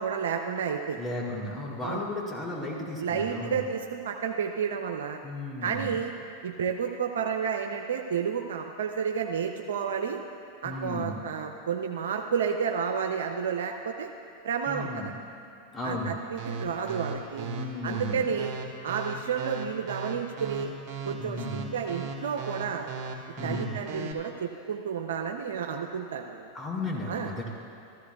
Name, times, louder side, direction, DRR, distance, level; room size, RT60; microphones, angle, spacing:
voice 1, 0.0-1.0 1.8-2.0 3.0-5.2 5.6-6.1 6.4-10.2 10.6-14.1 14.4-15.0 15.8-17.5 17.8-18.5 18.8-20.7 21.1-22.9 23.4-26.5 27.1-27.3, right 7 dB, 80° right, 3 dB, 0.5 m, -31 dB
voice 2, 1.0-3.6 5.2-6.0 10.6-11.2 14.7-15.2 15.7-16.2 17.4-18.2 21.2-21.7 23.4-23.8 26.5-27.5, left 2 dB, 10° left, -4 dB, 2.8 m, -34 dB
sound 1, 16.4-24.1, right 5 dB, 45° right, 1.6 m, -36 dB
14.5 x 13.5 x 2.3 m, 2.5 s
hypercardioid pair, 105°, 0 cm